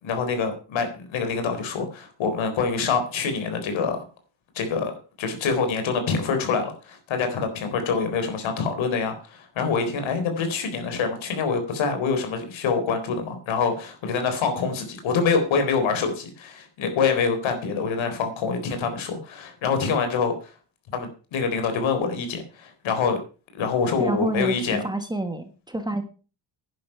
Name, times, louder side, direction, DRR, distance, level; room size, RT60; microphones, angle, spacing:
voice 1, 0.0-4.0 4.5-4.9 5.2-20.5 20.9-23.2 23.5-24.8, left 5 dB, 75° left, 7 dB, 4.2 m, -25 dB
voice 2, 24.0-26.0, right 1 dB, 10° right, 8 dB, 1.3 m, -28 dB
11.0 x 10.0 x 5.6 m, 0.36 s
cardioid pair, 150°, 47 cm